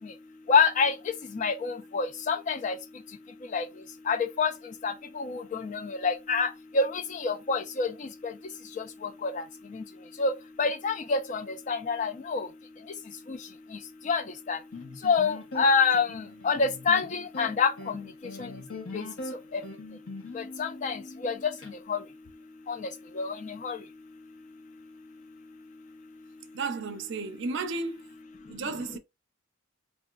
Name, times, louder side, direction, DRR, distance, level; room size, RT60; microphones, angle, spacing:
voice 1, 0.5-0.9 1.3-2.7 3.5-3.6 4.1-4.5 4.8-6.5 6.7-8.3 9.2-9.4 10.2-10.3 10.6-12.5 13.3-13.4 14.1-14.6 15.0-18.1 18.9-19.0 19.5-19.6 20.3-21.5 21.9-22.0 22.7-22.8 23.2-23.8, left 5 dB, 35° left, 0.3 m, -27 dB
sound 1, 14.7-21.7, left 2 dB, 75° left, 0.9 m, -42 dB
voice 2, 26.5-28.1 28.5-29.0, right 3 dB, 55° right, 0.4 m, -33 dB
3.0 x 2.4 x 2.3 m
head